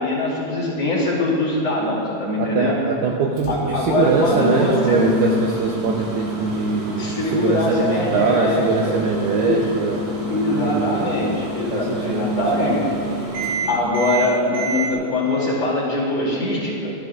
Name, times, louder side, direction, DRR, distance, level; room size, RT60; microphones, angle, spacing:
voice 1, 0.0-2.7 3.5-5.0 7.0-8.9 9.3-9.6 10.3-12.8 13.7-16.9, left 2 dB, 40° left, -7 dB, 3.1 m, -22 dB
voice 2, 2.4-10.0 10.6-12.5 12.7-12.9, right 5 dB, 90° right, 0 dB, 2.2 m, -23 dB
Microwave oven, 3.4-14.9, right 1 dB, 65° right, 4.6 m, -27 dB
24.5 x 12.5 x 2.5 m, 2.6 s
omnidirectional pair, 5.6 m